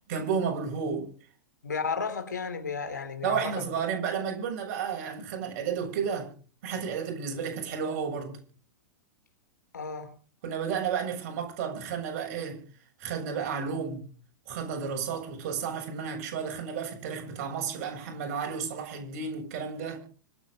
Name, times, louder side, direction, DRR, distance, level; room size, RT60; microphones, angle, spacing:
voice 1, 0.1-1.1 3.2-6.3 6.6-8.4 10.4-12.6 13.0-14.1 14.5-20.0, right 6 dB, 50° right, 7.2 m, -32 dB
voice 2, 1.6-3.6 9.7-10.1, left 5 dB, 75° left, 3.3 m, -33 dB
25.5 x 9.1 x 5.2 m
figure-of-eight pair, 100°, 10 cm